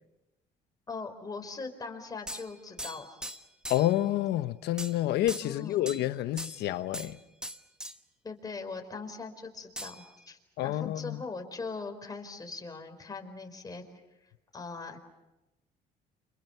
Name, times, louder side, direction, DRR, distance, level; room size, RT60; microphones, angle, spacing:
voice 1, 0.9-3.2 5.4-5.8 8.2-13.8 14.5-15.0, left 4 dB, 20° left, 4.6 m, -41 dB
sound 1, 2.3-4.0 4.8-5.0 5.3-6.1 6.4-7.1 7.4-8.0 9.8-10.3, equal, 5° right, 1.2 m, -41 dB
voice 2, 3.7-7.2 10.6-11.2, left 14 dB, 80° left, 1.1 m, -29 dB
29.5 x 27.5 x 5.9 m
cardioid pair, 110°, 17 cm